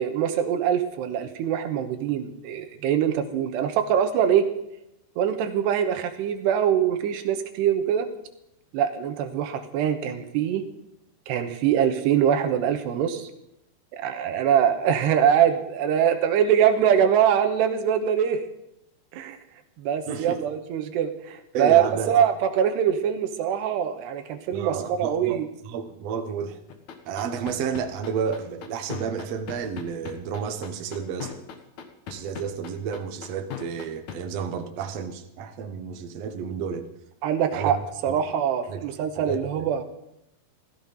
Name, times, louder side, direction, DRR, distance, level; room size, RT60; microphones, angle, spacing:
voice 1, 0.0-4.5 5.2-8.1 8.7-10.6 11.3-13.3 13.9-18.4 19.1-19.4 19.8-21.8 22.1-25.5 37.2-37.8 38.0-39.8, right 9 dB, 85° right, 7 dB, 3.3 m, -23 dB
voice 2, 20.1-20.4 21.5-22.1 24.5-26.6 27.0-31.3 32.1-36.9 37.5-37.7 38.1-38.2 38.7-38.8 39.1-39.7, right 7 dB, 65° right, 5 dB, 1.6 m, -31 dB
sound 1, 26.7-34.2, left 8 dB, 60° left, 2.0 m, -37 dB
15.0 x 14.5 x 5.3 m, 0.82 s
omnidirectional pair, 4.8 m